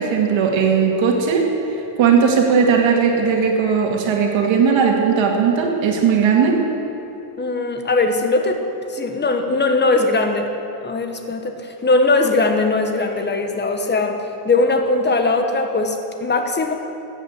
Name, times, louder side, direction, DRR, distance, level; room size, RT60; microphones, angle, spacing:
voice 1, 0.0-1.5 2.0-6.6, right 6 dB, 80° right, 1 dB, 2.3 m, -17 dB
voice 2, 7.4-8.6 8.9-10.5 10.8-16.7, left 3 dB, 25° left, 5 dB, 1.3 m, -20 dB
14.0 x 8.9 x 8.3 m, 2.9 s
cardioid pair, 140°, 46 cm